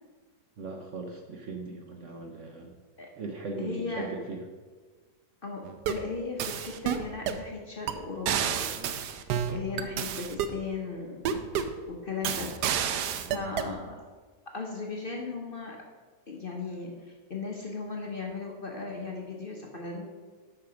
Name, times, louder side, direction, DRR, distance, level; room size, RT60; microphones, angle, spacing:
voice 1, 0.6-2.8 3.2-4.4 13.6-13.8, right 3 dB, 55° right, 2 dB, 1.0 m, -38 dB
voice 2, 3.6-4.1 5.4-11.4 11.9-12.5 13.1-14.0 14.5-15.8 16.3-20.1, left 4 dB, 40° left, 0 dB, 1.0 m, -37 dB
sound 1, 5.6-6.1 6.4-7.4 7.9-8.0 8.3-10.6 11.2-11.8 12.2-13.7, right 8 dB, 75° right, 1.2 m, -30 dB
8.5 x 6.0 x 5.1 m, 1.4 s
omnidirectional pair, 1.8 m